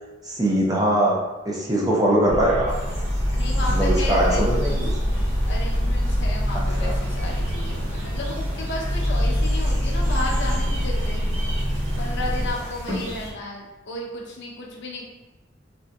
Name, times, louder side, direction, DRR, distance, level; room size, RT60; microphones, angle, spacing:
voice 1, 0.2-1.2 1.5-2.7 3.7-5.2 6.5-6.9, right 1 dB, 20° right, -4 dB, 0.5 m, -22 dB
sound 1, 2.3-12.5, equal, 85° right, 0.7 m, -24 dB
sound 2, 2.7-13.3, equal, 35° right, 1.1 m, -36 dB
voice 2, 3.3-4.8 5.4-11.2 12.0-15.0, left 1 dB, 60° left, -2 dB, 0.6 m, -33 dB
3.7 x 2.6 x 2.2 m, 1.1 s
head